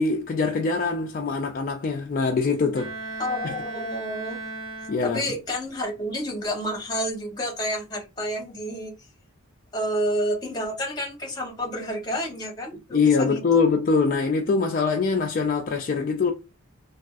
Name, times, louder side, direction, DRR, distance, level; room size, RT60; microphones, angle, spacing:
voice 1, 0.0-3.5 4.9-5.3 12.9-16.3, left 4 dB, 40° left, 0.3 m, -23 dB
Bowed string instrument, 2.7-5.5, right 2 dB, 80° right, 1.1 m, -36 dB
voice 2, 3.2-4.4 5.0-8.9 9.7-13.4, equal, 20° left, 1.0 m, -29 dB
3.4 x 2.3 x 2.4 m
head